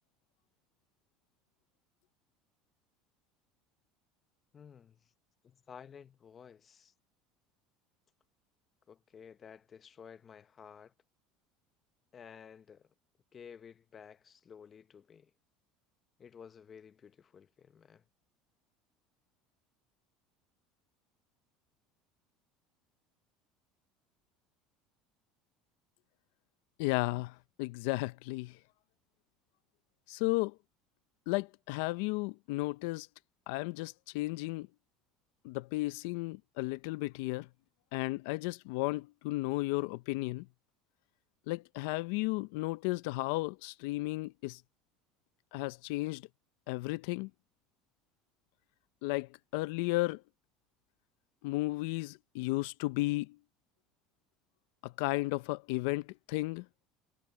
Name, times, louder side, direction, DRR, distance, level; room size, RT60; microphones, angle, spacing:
voice 1, 4.5-5.0 5.4-6.9 8.9-10.9 12.1-12.9 13.3-15.3 16.2-18.0, left 7 dB, 25° left, 0.7 m, -53 dB
voice 2, 26.8-28.6 30.1-30.6 31.3-33.1 33.5-34.7 35.4-37.5 37.9-40.5 41.5-44.6 45.5-46.3 46.7-47.3 49.0-50.2 51.4-53.4 54.8-56.7, left 21 dB, 75° left, 0.4 m, -34 dB
cardioid pair, 155°, 0 cm